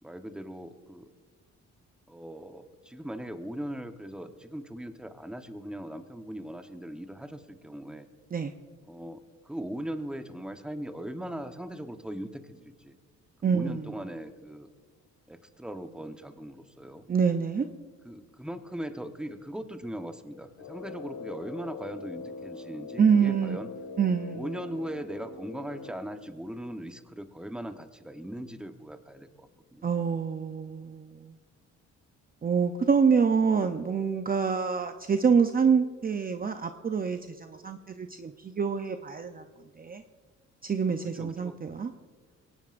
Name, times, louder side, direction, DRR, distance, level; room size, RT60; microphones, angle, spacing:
voice 1, 0.0-1.1 2.1-8.1 8.9-13.0 13.4-14.7 15.3-17.1 18.0-23.7 24.3-29.9 41.1-41.6, right 1 dB, 5° right, 7 dB, 1.0 m, -39 dB
voice 2, 13.4-13.9 17.1-17.7 23.0-23.6 24.0-24.4 29.8-31.3 32.4-39.4 39.8-40.0 40.6-41.9, right 6 dB, 30° right, 7 dB, 0.6 m, -26 dB
Brass instrument, 20.5-26.1, left 4 dB, 85° left, 1.9 m, -42 dB
22.5 x 18.5 x 2.5 m, 1.5 s
cardioid pair, 90°, 30 cm